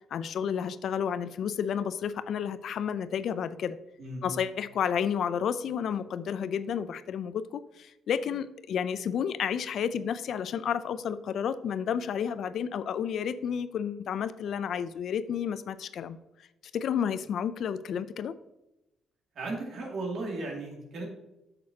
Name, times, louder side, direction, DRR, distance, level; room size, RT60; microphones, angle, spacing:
voice 1, 0.1-3.8 4.2-16.2 16.7-18.3, left 8 dB, 65° left, 13 dB, 0.4 m, -31 dB
voice 2, 4.0-4.4 19.3-21.0, right 2 dB, 65° right, -1 dB, 2.3 m, -36 dB
8.4 x 6.7 x 2.8 m, 0.94 s
cardioid pair, 90°, 0 cm